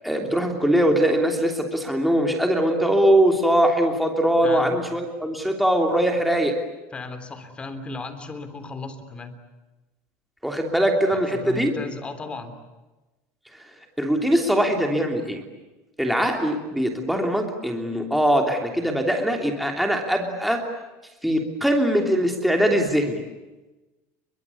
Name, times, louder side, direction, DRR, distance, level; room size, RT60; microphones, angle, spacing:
voice 1, 0.0-6.6 10.4-11.7 14.0-15.4 16.0-20.7 21.2-23.2, right 1 dB, ahead, 2 dB, 3.1 m, -21 dB
voice 2, 4.4-4.8 6.9-9.4 11.1-12.5, left 3 dB, 15° left, 9 dB, 3.4 m, -35 dB
30.0 x 23.5 x 8.4 m, 1.1 s
cardioid pair, 165°, 7 cm